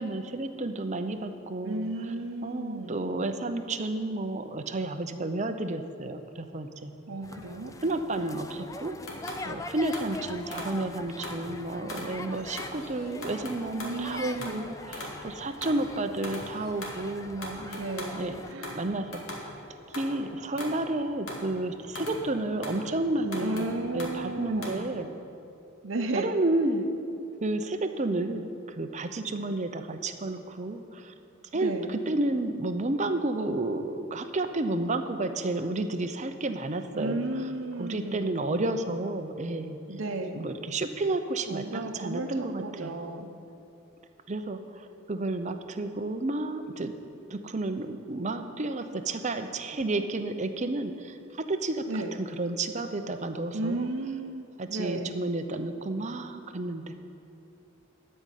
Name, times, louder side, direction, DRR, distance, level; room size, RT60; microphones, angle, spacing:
voice 1, 0.0-1.9 2.4-6.9 7.8-9.0 9.5-17.8 18.2-18.4 18.7-19.2 19.9-23.7 23.9-25.1 26.2-26.9 27.4-31.1 31.5-37.2 37.8-39.8 40.3-42.9 44.3-46.9 47.3-51.1 51.5-51.8 52.2-53.9 54.6-56.9, right 2 dB, 35° right, 8 dB, 0.6 m, -31 dB
voice 2, 1.6-3.1 7.1-7.7 13.8-14.7 17.6-18.9 23.4-24.9 25.8-26.3 31.5-32.0 36.9-38.4 39.9-40.4 41.5-43.3 51.9-52.2 53.5-55.2, right 2 dB, 65° right, 3 dB, 0.9 m, -34 dB
sound 1, 7.2-18.5, left 3 dB, 15° left, 0.3 m, -43 dB
sound 2, 9.1-11.5 11.9-24.8, left 1 dB, 85° left, 2.2 m, -41 dB
13.0 x 5.5 x 9.1 m, 2.7 s
head